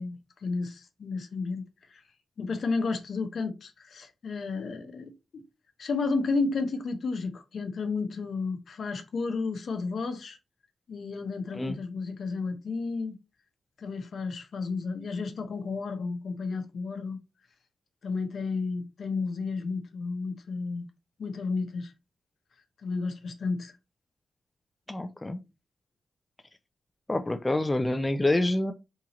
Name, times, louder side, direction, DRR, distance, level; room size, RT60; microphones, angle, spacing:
voice 1, 0.0-1.6 1.9-2.0 2.4-5.4 5.8-10.4 10.9-13.2 13.8-17.2 18.0-20.8 21.2-21.9 22.8-23.7, left 4 dB, 70° left, 0.8 m, -32 dB
voice 2, 24.9-25.4 27.1-28.7, left 1 dB, 20° left, 0.4 m, -27 dB
3.7 x 2.8 x 2.9 m
cardioid pair, 80°, 0 cm